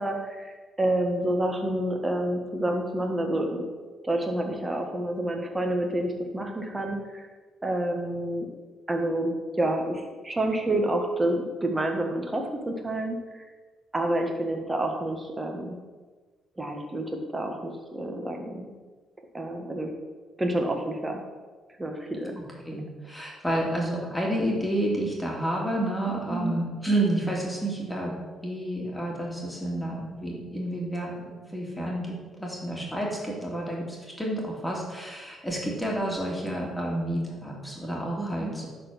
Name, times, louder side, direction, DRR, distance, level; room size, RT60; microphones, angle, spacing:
voice 1, 0.0-3.6 4.0-7.2 7.6-8.5 8.9-13.4 13.9-15.8 16.6-18.7 19.3-19.9 20.4-21.2 21.8-22.4 22.7-22.8 26.3-26.5 38.2-38.5, right 1 dB, 15° right, 2 dB, 1.6 m, -28 dB
voice 2, 22.6-28.2 28.4-38.7, right 1 dB, 10° left, -2 dB, 2.5 m, -30 dB
11.0 x 4.3 x 6.2 m, 1.3 s
cardioid pair, 90°, 0 cm